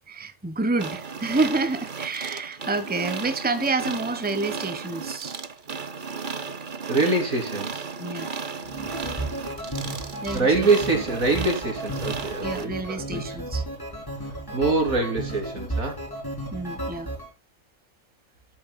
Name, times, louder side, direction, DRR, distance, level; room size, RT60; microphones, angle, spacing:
voice 1, 0.1-5.4 8.0-8.3 10.2-10.7 12.4-13.6 16.5-17.1, right 3 dB, 5° right, 1.1 m, -28 dB
sound 1, 0.8-12.7, right 5 dB, 40° right, 1.1 m, -35 dB
voice 2, 6.9-7.9 10.3-13.2 14.5-16.1, right 3 dB, 70° right, 3.7 m, -24 dB
sound 2, 8.6-17.3, right 1 dB, 15° left, 3.4 m, -33 dB
13.0 x 9.5 x 2.2 m
omnidirectional pair, 1.5 m